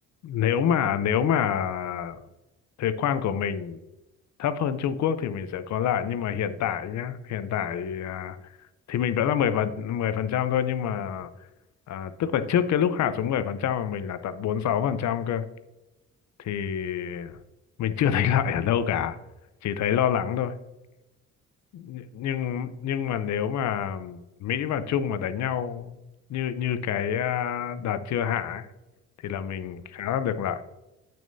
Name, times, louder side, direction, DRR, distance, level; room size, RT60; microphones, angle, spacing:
voice 1, 0.2-2.2 2.8-3.8 4.4-8.4 8.9-11.3 11.9-15.5 16.4-17.4 17.8-19.2 19.6-20.5 21.7-26.0 26.3-28.7 29.2-30.6, left 9 dB, 65° left, 12 dB, 0.6 m, -27 dB
8.6 x 6.2 x 2.7 m, 0.98 s
cardioid pair, 90°, 30 cm